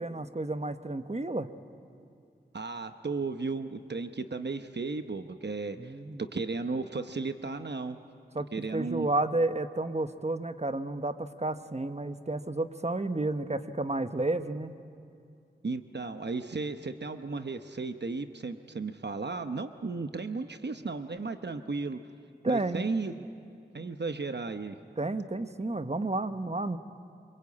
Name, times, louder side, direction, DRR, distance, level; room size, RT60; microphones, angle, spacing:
voice 1, 0.0-1.5 5.8-6.2 8.3-14.7 22.4-22.9 25.0-26.8, right 2 dB, 35° right, 9 dB, 1.1 m, -31 dB
voice 2, 2.5-5.9 6.2-8.0 8.5-9.1 15.6-22.0 22.5-23.1 23.7-24.8, right 3 dB, 70° right, 8 dB, 0.9 m, -34 dB
26.5 x 23.5 x 8.6 m, 2.3 s
wide cardioid pair, 50°, 18 cm